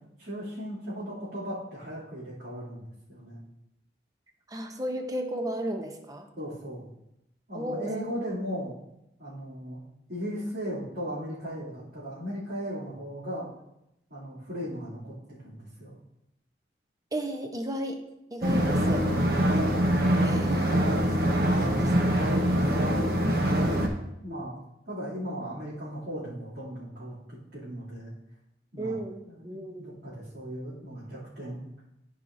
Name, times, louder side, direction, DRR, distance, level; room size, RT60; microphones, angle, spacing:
voice 1, 0.2-3.4 6.4-6.9 7.5-8.8 9.2-9.8 10.1-13.5 14.1-16.0 20.7-21.0 22.7-23.8 24.2-24.6 24.8-28.1 28.7-29.0 29.2-31.6, equal, 75° right, -12 dB, 2.8 m, -37 dB
voice 2, 4.5-6.3 7.5-8.0 17.1-18.0 18.3-19.1 20.2-20.8 21.5-22.1 23.8-23.9 24.3-24.4 28.8-29.9, equal, 20° right, 5 dB, 0.7 m, -34 dB
sound 1, 18.4-23.9, equal, 55° right, 1.0 m, -24 dB
13.5 x 5.0 x 2.7 m, 0.84 s
head